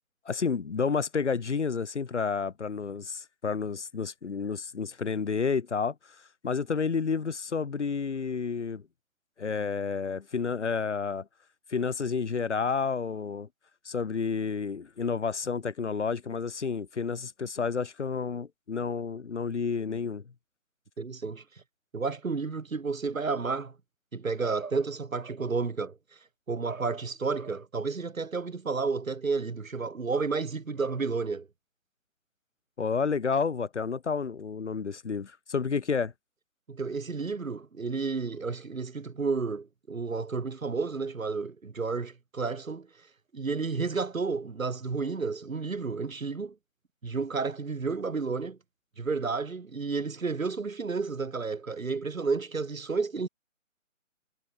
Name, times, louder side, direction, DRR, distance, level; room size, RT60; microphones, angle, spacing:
voice 1, 0.3-6.0 6.4-8.8 9.4-11.3 11.7-13.5 13.9-20.2 32.8-36.1, left 5 dB, 60° left, 3.5 m, -30 dB
voice 2, 21.0-21.4 21.9-23.8 24.1-26.0 26.5-31.5 36.7-42.9 43.3-46.6 47.0-48.6 49.0-53.3, right 4 dB, 75° right, 7.7 m, -31 dB
hypercardioid pair, 175°, 40 cm